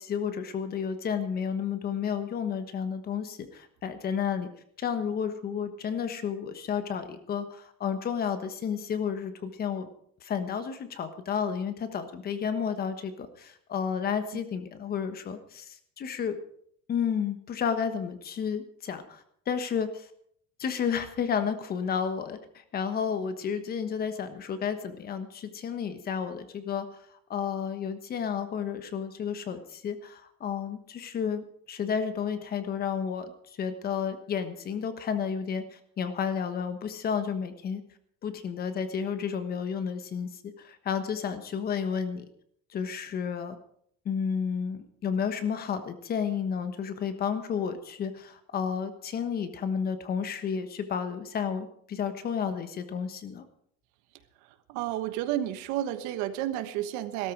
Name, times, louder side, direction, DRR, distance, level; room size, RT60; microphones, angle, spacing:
voice 1, 0.0-4.5 4.8-9.9 10.2-16.4 16.9-20.1 20.6-22.4 22.7-26.9 27.3-33.3 33.6-37.8 38.2-40.3 40.6-42.3 42.7-43.6 44.0-53.4, left 7 dB, 30° left, 9 dB, 1.3 m, -31 dB
voice 2, 54.7-57.3, right 12 dB, 70° right, 11 dB, 1.3 m, -31 dB
16.5 x 13.5 x 4.7 m, 0.66 s
cardioid pair, 165°, 30 cm